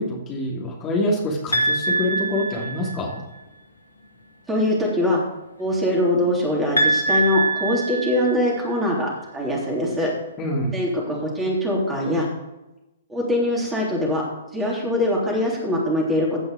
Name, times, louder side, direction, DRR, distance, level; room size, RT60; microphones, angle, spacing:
voice 1, 0.0-3.2 10.4-10.7, left 1 dB, 25° left, -3 dB, 2.7 m, -25 dB
sound 1, 1.5-3.2 6.8-8.8, right 2 dB, 85° left, 1.8 m, -23 dB
voice 2, 4.5-5.2 5.6-10.1 10.7-12.3 13.1-14.2 14.5-16.4, left 1 dB, 10° right, -3 dB, 3.3 m, -22 dB
15.5 x 5.5 x 5.1 m, 0.97 s
figure-of-eight pair, 120°, 0 cm